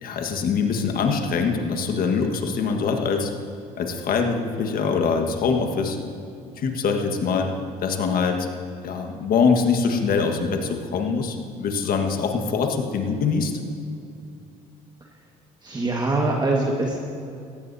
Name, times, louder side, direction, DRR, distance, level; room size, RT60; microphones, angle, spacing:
voice 1, 0.0-3.3 3.8-6.0 6.6-7.5 7.8-8.5 8.8-13.5, left 5 dB, 60° left, 4 dB, 1.6 m, -23 dB
voice 2, 15.6-17.0, right 2 dB, 25° right, -1 dB, 1.6 m, -23 dB
17.5 x 14.5 x 2.8 m, 2.5 s
supercardioid pair, 75°, 17 cm